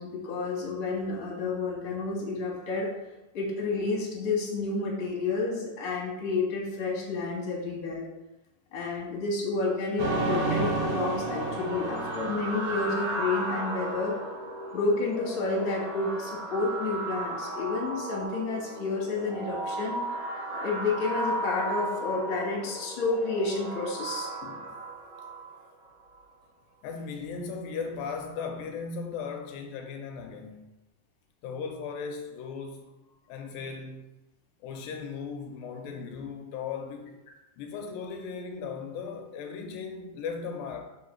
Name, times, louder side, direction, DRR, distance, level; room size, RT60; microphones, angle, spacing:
voice 1, 0.0-2.9 3.3-8.1 8.7-14.2 14.7-20.0 20.5-24.3, left 3 dB, 50° left, 1.9 m, -30 dB
sound 1, 10.0-13.4, right 2 dB, 75° right, 1.6 m, -31 dB
sound 2, 10.8-25.9, right 1 dB, 90° right, 1.3 m, -35 dB
voice 2, 24.4-24.8 26.8-30.7 31.4-32.9 33.3-34.1 34.6-37.2 37.6-40.8, left 5 dB, 80° left, 2.2 m, -37 dB
5.4 x 3.8 x 5.8 m
omnidirectional pair, 4.4 m